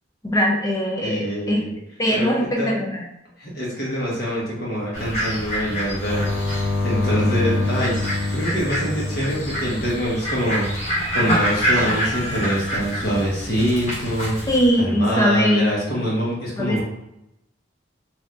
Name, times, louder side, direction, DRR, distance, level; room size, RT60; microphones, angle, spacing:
voice 1, 0.2-1.6 2.0-3.0 14.5-15.6 15.9-16.0 16.6-16.8, equal, 20° left, -1 dB, 0.5 m, -21 dB
voice 2, 1.0-1.7 2.1-2.7 3.4-6.2 6.8-8.0 8.3-10.7 11.1-14.5 14.7-16.8, equal, 55° left, -4 dB, 1.3 m, -24 dB
sound 1, 4.9-14.7, equal, 40° left, 1.4 m, -27 dB
sound 2, 6.0-10.6 13.9-14.5, left 2 dB, 70° left, 0.7 m, -26 dB
4.4 x 2.7 x 2.5 m, 0.84 s
head